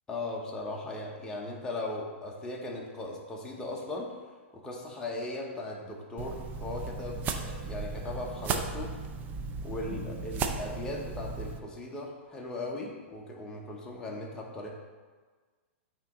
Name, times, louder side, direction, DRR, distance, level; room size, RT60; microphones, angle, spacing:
voice 1, 0.1-4.2 4.5-8.9 9.6-14.7, left 2 dB, 10° left, -3 dB, 0.9 m, -38 dB
sound 1, 6.2-11.6, right 4 dB, 25° right, 0.4 m, -35 dB
8.8 x 3.0 x 3.7 m, 1.4 s
hypercardioid pair, 140°, 7 cm